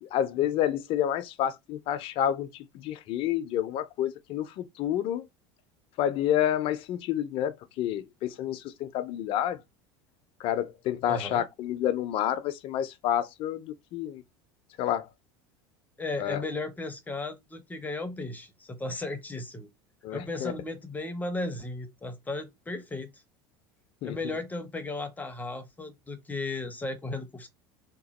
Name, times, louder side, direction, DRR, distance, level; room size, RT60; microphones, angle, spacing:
voice 1, 0.0-5.3 6.0-9.6 10.4-14.2 14.8-15.1 16.2-16.4 20.0-20.5 24.0-24.3, left 11 dB, 50° left, 0.5 m, -29 dB
voice 2, 11.1-11.4 16.0-19.7 20.1-23.2 24.0-27.5, left 2 dB, 15° left, 0.7 m, -35 dB
2.9 x 2.2 x 4.1 m
supercardioid pair, 100°, 12 cm